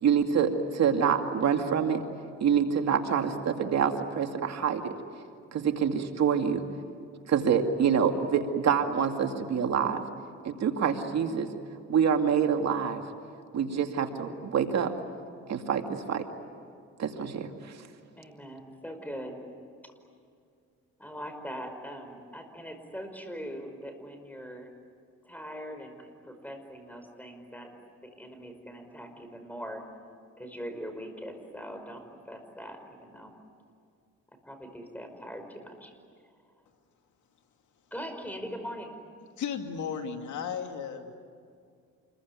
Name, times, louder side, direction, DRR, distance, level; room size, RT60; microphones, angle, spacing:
voice 1, 0.0-2.0 2.4-4.8 5.5-6.6 7.3-10.0 10.4-11.5 11.9-13.0 13.5-14.9 15.5-16.2 17.0-17.7, right 7 dB, 60° right, 5 dB, 2.4 m, -26 dB
voice 2, 18.2-19.4 19.8-19.9 21.0-24.7 25.2-27.7 28.0-29.8 30.4-33.3 34.4-35.9 37.9-39.0, equal, 5° left, 6 dB, 5.3 m, -41 dB
voice 3, 39.4-41.2, left 7 dB, 75° left, 5 dB, 2.5 m, -34 dB
28.0 x 22.0 x 9.5 m, 2.4 s
cardioid pair, 90°, 30 cm